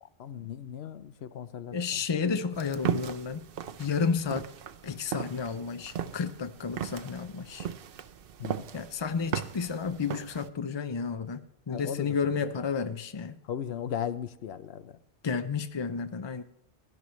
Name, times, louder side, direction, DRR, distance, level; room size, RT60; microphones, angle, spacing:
voice 1, 0.0-2.4 8.4-8.7 11.7-12.1 13.4-15.0, left 9 dB, 80° left, 12 dB, 0.9 m, -37 dB
voice 2, 1.7-3.5 3.8-4.5 4.8-7.7 8.7-13.4 15.2-16.4, left 5 dB, 40° left, 10 dB, 0.4 m, -31 dB
sound 1, 2.5-10.5, right 8 dB, 65° right, 0.8 m, -37 dB
17.0 x 11.5 x 3.1 m, 0.82 s
omnidirectional pair, 1.0 m